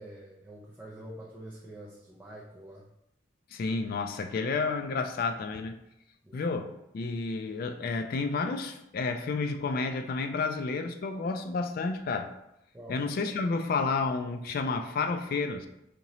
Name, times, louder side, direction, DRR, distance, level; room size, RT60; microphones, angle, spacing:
voice 1, 0.0-2.9 6.2-6.4 12.7-13.0, right 1 dB, 10° right, -6 dB, 0.5 m, -46 dB
voice 2, 3.5-5.8 6.3-12.3 12.9-15.7, left 4 dB, 50° left, 7 dB, 0.3 m, -31 dB
5.1 x 2.8 x 3.0 m, 0.85 s
head